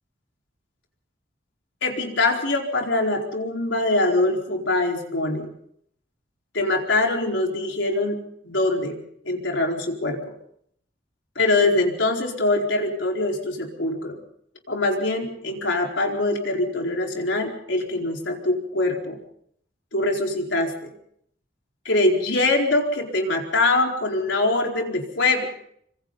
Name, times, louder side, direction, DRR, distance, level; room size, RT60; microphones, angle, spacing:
voice 1, 1.8-5.5 6.5-8.2 8.4-9.0 9.2-10.3 11.3-14.2 14.7-19.2 19.9-20.9 21.8-25.5, left 2 dB, 75° left, 1 dB, 4.6 m, -23 dB
26.0 x 25.0 x 4.1 m, 0.67 s
head